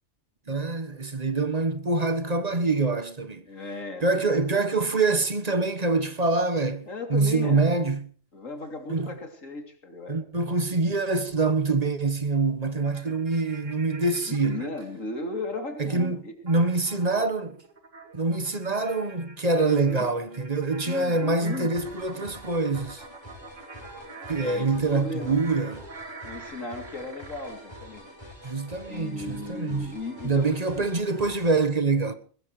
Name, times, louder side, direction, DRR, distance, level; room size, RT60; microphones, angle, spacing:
voice 1, 0.5-3.4 4.0-8.1 8.9-9.1 10.1-14.7 15.8-17.6 18.1-23.0 24.3-25.8 28.4-29.9 30.2-32.2, right 3 dB, 30° right, 1.3 m, -25 dB
voice 2, 3.5-4.2 6.9-7.8 8.3-10.2 14.3-16.3 19.6-20.1 20.8-21.7 24.4-25.4 26.2-28.3 28.9-30.9, left 2 dB, 80° left, 3.5 m, -36 dB
sound 1, 12.8-14.8 16.5-27.5, right 3 dB, 70° right, 3.3 m, -46 dB
sound 2, 21.7-31.7, equal, 20° left, 5.5 m, -46 dB
20.5 x 20.5 x 3.2 m
omnidirectional pair, 1.4 m